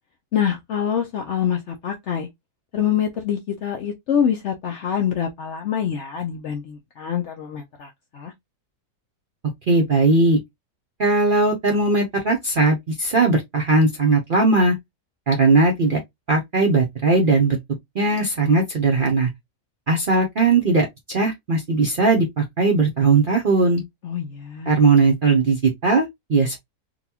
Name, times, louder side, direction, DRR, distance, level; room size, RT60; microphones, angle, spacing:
voice 1, 0.3-2.3 2.7-8.3 24.0-24.8, left 8 dB, 65° left, 0.7 m, -25 dB
voice 2, 9.7-10.4 11.0-14.7 15.3-16.0 16.3-17.6 17.9-19.3 19.9-23.8 24.7-26.6, right 3 dB, 55° right, 0.6 m, -19 dB
3.9 x 2.3 x 2.8 m
omnidirectional pair, 1.7 m